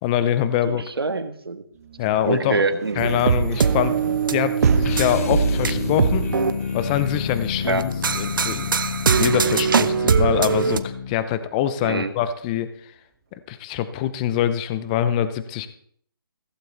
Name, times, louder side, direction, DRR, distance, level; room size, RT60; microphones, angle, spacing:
voice 1, 0.0-0.9 2.0-2.6 3.0-6.3 6.7-7.9 8.2-8.6 9.2-12.7 13.5-15.7, left 10 dB, 20° left, 13 dB, 0.6 m, -24 dB
voice 2, 0.6-1.6 2.2-3.1 7.6-7.9 11.8-12.1, right 3 dB, 90° right, 9 dB, 1.6 m, -25 dB
sound 1, 1.7-11.5, right 7 dB, 40° right, 1.3 m, -37 dB
sound 2, 3.0-6.5 7.8-10.8, right 6 dB, 60° right, 0.9 m, -21 dB
sound 3, 4.8-11.3, left 6 dB, 40° left, 1.2 m, -29 dB
15.5 x 15.0 x 3.4 m, 0.62 s
hypercardioid pair, 155°, 12 cm